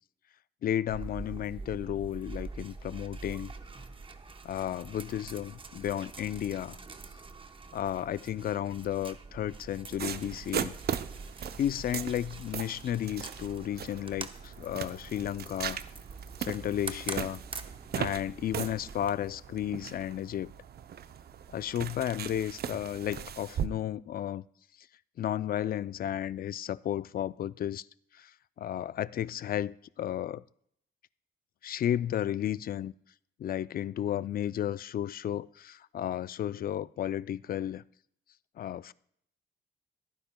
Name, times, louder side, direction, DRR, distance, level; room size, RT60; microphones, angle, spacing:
voice 1, 0.6-3.5 4.4-6.8 7.7-10.7 11.6-15.8 16.4-17.4 17.9-20.5 21.5-24.4 25.2-27.9 28.1-28.3 28.6-30.4 31.6-32.9 33.4-37.8 38.6-38.9, left 11 dB, 50° left, 0.4 m, -33 dB
sound 1, 0.9-19.1, right 3 dB, 25° right, 0.9 m, -45 dB
sound 2, 10.0-23.7, right 9 dB, 55° right, 0.6 m, -39 dB
26.5 x 9.8 x 2.2 m
cardioid pair, 90°, 20 cm